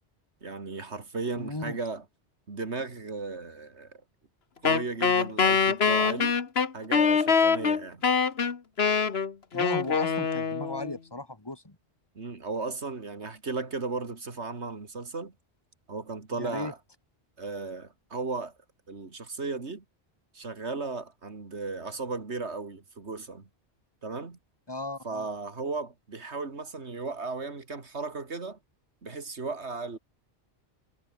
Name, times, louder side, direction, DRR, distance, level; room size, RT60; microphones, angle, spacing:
voice 1, 0.4-2.0 2.5-4.0 4.6-6.4 6.7-8.1 12.1-15.3 15.9-16.8 17.4-18.5 18.9-19.8 20.3-23.5 24.0-24.4 25.0-28.6 29.0-30.0, right 3 dB, 85° right, 2.8 m, -35 dB
voice 2, 1.4-1.8 9.5-11.8 16.4-16.7 24.7-25.3, left 2 dB, 20° left, 2.2 m, -36 dB
Wind instrument woodwind instrument, 4.6-10.9, left 5 dB, 65° left, 1.7 m, -24 dB
omnidirectional pair, 1.1 m